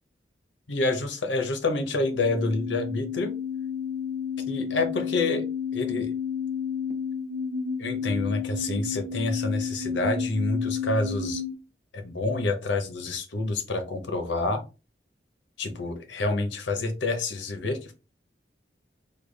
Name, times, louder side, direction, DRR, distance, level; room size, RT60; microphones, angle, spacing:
voice 1, 0.7-3.3 4.5-5.5 5.7-6.1 7.8-11.4 11.9-14.6 15.6-17.9, left 2 dB, 85° left, 6 dB, 0.8 m, -28 dB
sound 1, 1.9-11.5, left 6 dB, 55° right, 0.6 m, -31 dB
3.3 x 2.3 x 3.3 m, 0.30 s
head